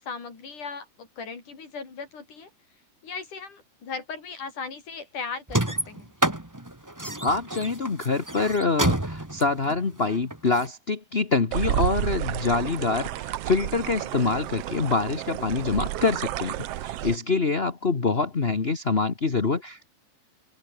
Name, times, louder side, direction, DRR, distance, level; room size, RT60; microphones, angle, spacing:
voice 1, 0.0-2.5 3.0-6.1, left 5 dB, 70° left, 6.5 m, -37 dB
sound 1, 5.5-10.7, right 1 dB, 10° right, 1.5 m, -28 dB
voice 2, 7.2-16.5 16.8-19.9, left 4 dB, 35° left, 1.0 m, -25 dB
sound 2, 11.5-17.2, right 14 dB, 70° right, 1.5 m, -31 dB
open air
omnidirectional pair, 3.7 m